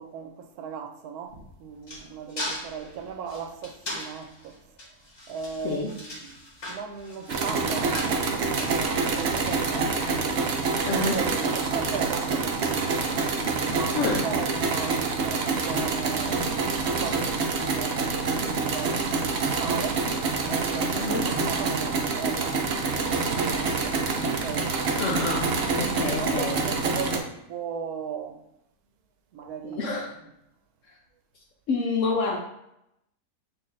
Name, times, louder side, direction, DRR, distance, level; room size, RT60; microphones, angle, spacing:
voice 1, 0.0-4.6 5.3-6.3 6.7-10.0 10.9-13.3 13.7-16.5 16.8-20.1 20.5-22.6 23.2-24.0 24.4-24.7 25.9-28.4 29.3-30.0, right 7 dB, 75° right, 1.1 m, -37 dB
sound 1, 1.3-9.5, left 1 dB, 50° left, 1.5 m, -39 dB
sound 2, 7.3-27.2, right 4 dB, 60° right, 0.7 m, -26 dB
voice 2, 10.9-11.2 13.9-14.3 21.0-21.3 25.0-26.6 29.6-30.1 30.9-31.0 31.7-32.4, left 3 dB, 65° left, 0.8 m, -28 dB
6.2 x 2.6 x 3.1 m
omnidirectional pair, 1.6 m